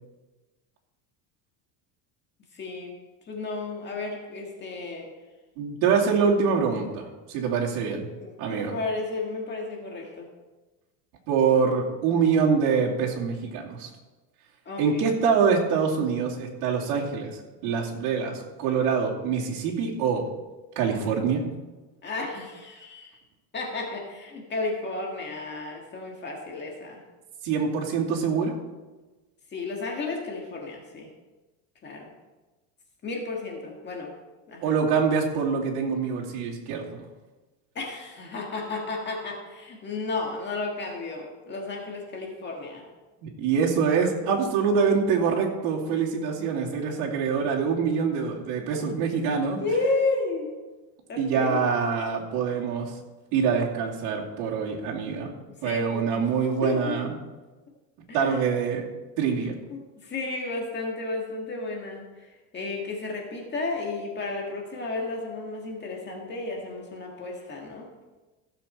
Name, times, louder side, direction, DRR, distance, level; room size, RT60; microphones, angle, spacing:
voice 1, 2.5-2.9 3.3-5.1 8.2-10.3 14.7-15.1 22.0-23.1 23.5-27.0 29.5-31.1 31.8-32.1 33.0-34.1 34.5-34.8 37.8-42.8 49.0-49.1 49.6-50.5 51.1-51.7 55.6-56.3 56.6-57.0 58.1-58.5 59.7-67.9, left 3 dB, 25° left, 0 dB, 1.8 m, -32 dB
voice 2, 5.6-8.1 8.4-8.7 11.3-13.9 14.8-17.3 17.6-20.2 20.8-21.4 27.4-28.5 34.6-37.0 43.2-49.6 51.2-52.9 53.3-55.3 55.6-57.2 58.1-58.9 59.2-59.6, right 6 dB, 75° right, -4 dB, 2.8 m, -25 dB
15.5 x 7.0 x 4.4 m, 1.2 s
cardioid pair, 160°, 43 cm